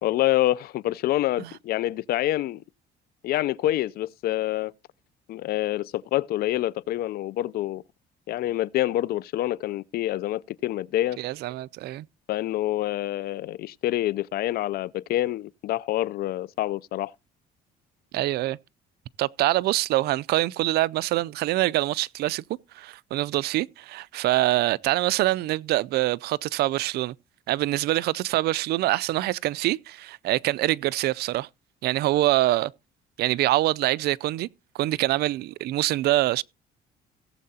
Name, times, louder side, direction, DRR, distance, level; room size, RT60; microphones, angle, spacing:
voice 1, 0.0-2.6 3.2-4.7 5.3-7.8 8.3-11.2 12.3-17.1, left 14 dB, 65° left, 0.4 m, -27 dB
voice 2, 11.2-12.1 18.1-18.6 19.2-22.4 22.7-27.1 27.5-31.5 31.8-32.7 33.2-34.5 34.7-36.4, right 16 dB, 70° right, 0.4 m, -25 dB
17.5 x 7.5 x 2.8 m
cardioid pair, 110°, 17 cm